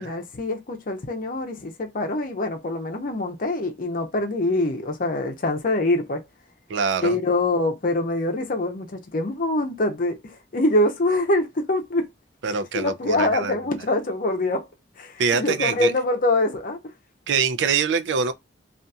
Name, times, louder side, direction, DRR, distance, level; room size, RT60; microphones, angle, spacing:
voice 1, 0.0-6.2 7.0-12.0 12.5-14.7 15.0-16.8, left 2 dB, 50° left, 0.7 m, -24 dB
voice 2, 6.7-7.2 12.4-13.6 15.2-15.9 17.3-18.3, right 5 dB, 85° right, 0.4 m, -24 dB
2.7 x 2.5 x 2.3 m
head